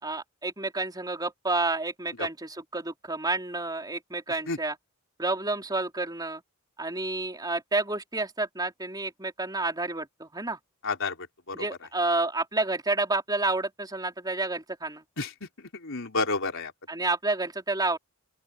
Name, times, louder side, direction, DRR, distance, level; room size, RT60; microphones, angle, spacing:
voice 1, 0.0-4.8 5.2-6.4 6.8-10.6 11.5-15.0 16.9-18.0, right 2 dB, 20° right, 4.1 m, -30 dB
voice 2, 10.8-11.2 11.5-11.6 15.2-16.7, left 3 dB, 60° left, 4.4 m, -30 dB
open air
head